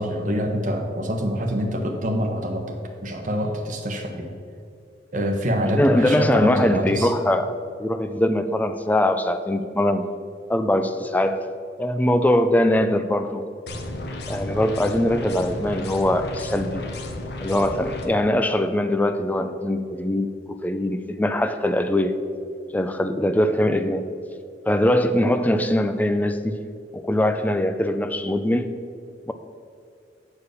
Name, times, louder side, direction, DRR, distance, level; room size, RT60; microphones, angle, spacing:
voice 1, 0.0-2.8 3.0-4.3 5.1-7.1, equal, 45° right, 3 dB, 1.1 m, -25 dB
voice 2, 5.7-7.5 7.8-10.1 10.5-11.5 11.8-13.4 14.3-16.8 17.4-22.2 22.7-24.1 24.7-26.6 26.9-28.7 29.3-29.4, left 1 dB, 10° left, 8 dB, 0.4 m, -22 dB
sound 1, 13.7-18.1, left 1 dB, 60° left, 0.8 m, -33 dB
8.4 x 4.8 x 6.3 m, 2.3 s
head